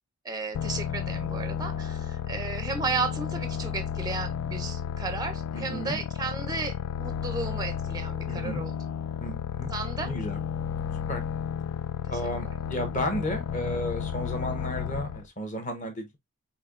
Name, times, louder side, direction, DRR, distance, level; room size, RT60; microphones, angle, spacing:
voice 1, 0.2-8.7 9.7-10.1, right 4 dB, 15° right, 0.5 m, -34 dB
sound 1, 0.5-15.3, left 8 dB, 85° left, 0.3 m, -33 dB
voice 2, 5.5-6.0 8.3-8.6 9.2-9.7 10.0-10.4 11.1-11.2 12.1-16.2, equal, 35° left, 1.0 m, -33 dB
5.3 x 2.6 x 2.4 m
head